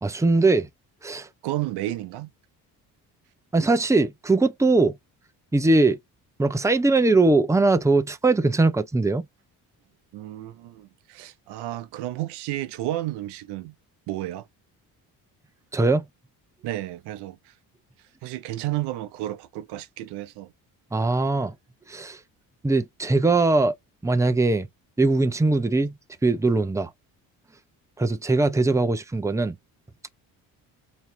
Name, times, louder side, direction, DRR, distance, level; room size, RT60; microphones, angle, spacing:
voice 1, 0.0-0.7 1.0-1.3 3.5-5.0 5.5-6.0 6.4-9.2 15.7-16.0 20.9-21.5 21.9-22.2 22.6-23.7 24.0-24.7 25.0-25.9 26.2-26.9 28.0-29.6, right 3 dB, 10° right, 0.7 m, -21 dB
voice 2, 1.4-2.3 10.1-13.7 14.1-14.4 16.6-17.5 18.2-20.5, right 15 dB, 85° right, 0.8 m, -32 dB
4.0 x 2.9 x 2.7 m
supercardioid pair, 75°, 40 cm